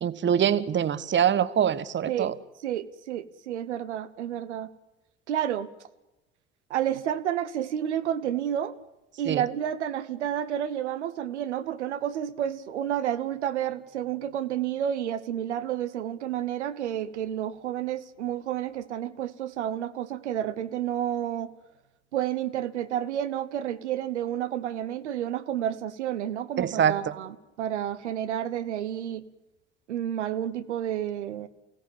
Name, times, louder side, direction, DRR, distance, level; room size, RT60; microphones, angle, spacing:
voice 1, 0.0-2.3 9.3-9.4 26.6-27.0, right 9 dB, 30° right, 16 dB, 1.3 m, -24 dB
voice 2, 2.1-2.4 2.6-4.7 5.3-5.7 6.7-8.8 9.2-21.5 22.1-29.2 29.9-31.5, right 10 dB, 75° right, 11 dB, 1.1 m, -30 dB
29.5 x 17.5 x 8.7 m, 1.0 s
figure-of-eight pair, 60°, 35 cm